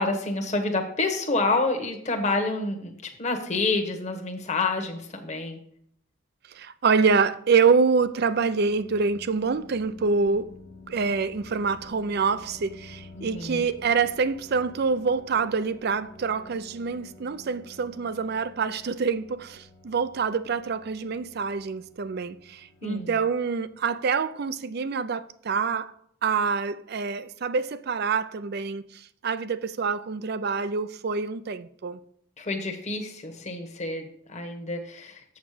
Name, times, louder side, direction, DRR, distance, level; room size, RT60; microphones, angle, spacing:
voice 1, 0.0-2.9 3.2-5.6 13.2-13.6 22.8-23.2 32.4-35.2, left 3 dB, 35° left, 1.2 m, -28 dB
voice 2, 6.5-10.5 10.9-25.9 26.2-32.0, right 5 dB, 50° right, 0.4 m, -26 dB
sound 1, 7.9-24.3, left 2 dB, 55° left, 1.2 m, -50 dB
7.3 x 7.2 x 4.9 m
head